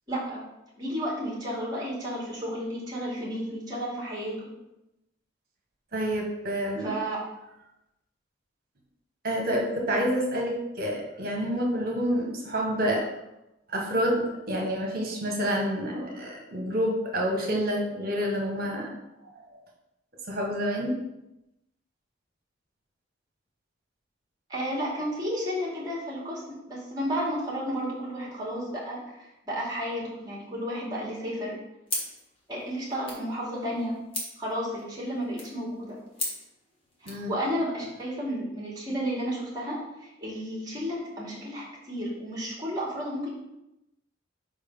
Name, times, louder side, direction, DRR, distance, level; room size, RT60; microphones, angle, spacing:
voice 1, 0.1-0.4 0.8-4.5 6.8-7.2 24.5-26.4 26.7-31.6 32.5-34.0 34.4-36.0 37.0-43.3, equal, 20° right, -4 dB, 2.3 m, -32 dB
voice 2, 5.9-6.9 9.2-13.1 13.7-18.9 19.3-19.6 20.3-20.9 37.0-37.3, equal, 50° right, -1 dB, 1.5 m, -28 dB
sound 1, 31.9-37.3, left 2 dB, 30° left, 1.5 m, -39 dB
5.2 x 4.6 x 5.4 m, 0.91 s
head